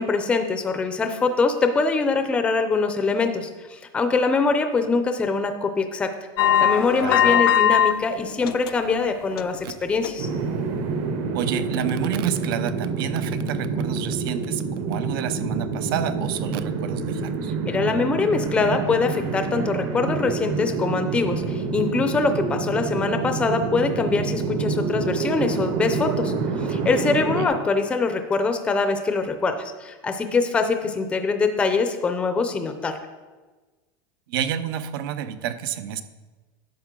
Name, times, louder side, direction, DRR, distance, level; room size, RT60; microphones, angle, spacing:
voice 1, 0.0-6.1 6.6-10.3 17.6-26.3 26.6-33.0, left 4 dB, 10° left, 7 dB, 0.5 m, -23 dB
sound 1, 6.4-7.9 8.3-8.9 9.3-9.6 10.0-10.1, left 10 dB, 90° left, 0.5 m, -19 dB
voice 2, 7.0-7.3 9.6-9.7 11.3-17.5 27.4-27.5 34.3-36.0, right 9 dB, 70° right, 12 dB, 0.7 m, -29 dB
sound 2, 10.2-27.5, right 4 dB, 40° right, 0.9 m, -27 dB
11.0 x 7.3 x 3.8 m, 1.3 s
supercardioid pair, 165°, 12 cm